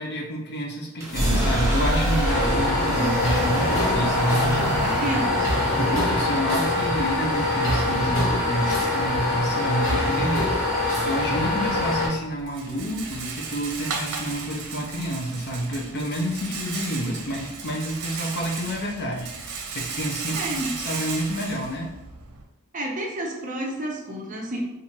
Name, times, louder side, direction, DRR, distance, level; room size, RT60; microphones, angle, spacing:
voice 1, 0.0-4.6 5.1-5.2 5.8-21.9, right 1 dB, 50° left, 0 dB, 0.6 m, -29 dB
sound 1, 0.9-8.7, equal, 15° right, 1.0 m, -27 dB
sound 2, 2.2-12.1, left 2 dB, 65° left, 1.4 m, -24 dB
voice 2, 4.5-5.5 20.3-20.7 22.7-24.6, right 1 dB, 35° right, -1 dB, 0.6 m, -30 dB
Rattle, 11.4-22.4, right 5 dB, 85° right, 0.7 m, -35 dB
4.4 x 2.6 x 2.8 m, 0.94 s
head